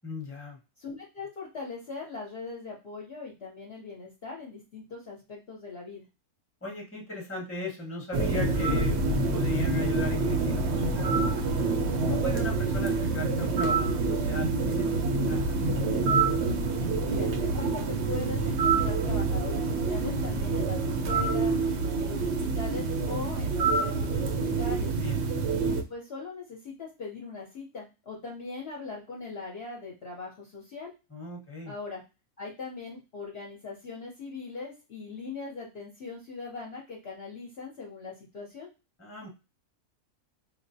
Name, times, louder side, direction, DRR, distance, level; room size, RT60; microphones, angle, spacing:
voice 1, 0.0-0.6 6.6-11.2 12.0-14.9 15.3-15.8 24.9-25.2 31.1-31.7 39.0-39.3, left 2 dB, 10° left, -2 dB, 0.9 m, -37 dB
voice 2, 0.8-6.0 17.0-21.5 22.0-25.0 25.5-30.9 31.7-32.0 32.4-38.7, left 4 dB, 55° left, -2 dB, 0.8 m, -40 dB
sound 1, 8.1-25.8, right 3 dB, 65° right, 0.7 m, -27 dB
4.7 x 2.1 x 2.6 m, 0.29 s
omnidirectional pair, 1.5 m